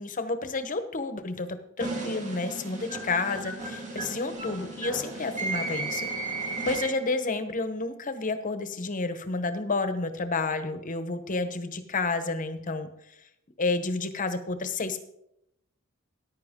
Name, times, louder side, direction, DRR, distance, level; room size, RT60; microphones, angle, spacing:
voice 1, 0.0-1.5 1.8-6.1 6.6-12.9 13.6-15.0, left 3 dB, 40° left, 10 dB, 1.0 m, -30 dB
sound 1, 1.8-7.2, right 3 dB, 35° right, 2.2 m, -34 dB
14.0 x 10.5 x 3.7 m, 0.79 s
head